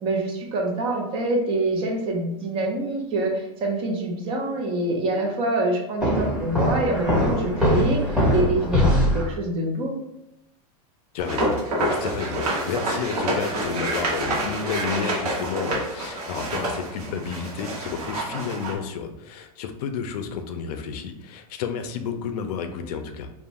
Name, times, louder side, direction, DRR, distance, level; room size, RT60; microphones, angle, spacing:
voice 1, 0.0-10.0, right 2 dB, 30° right, 1 dB, 0.5 m, -26 dB
Walk footsteps, 6.0-9.3, equal, 5° right, 0.8 m, -22 dB
voice 2, 11.1-11.6 11.9-23.3, left 6 dB, 80° left, 7 dB, 0.4 m, -31 dB
sound 1, 11.2-18.7, right 1 dB, 80° right, 0.9 m, -27 dB
2.5 x 2.1 x 2.9 m, 0.84 s
supercardioid pair, 150°, 20 cm